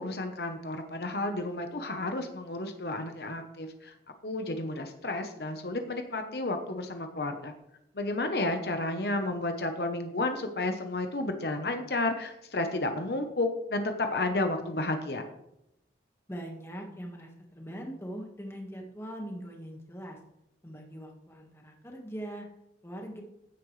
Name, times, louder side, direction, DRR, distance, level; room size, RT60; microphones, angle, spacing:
voice 1, 0.0-3.9 4.2-7.5 7.9-15.3, left 2 dB, 65° left, 6 dB, 1.0 m, -32 dB
voice 2, 16.3-20.2 20.6-22.5 22.8-23.2, equal, 15° left, 1 dB, 1.6 m, -41 dB
15.5 x 8.5 x 3.3 m, 0.83 s
head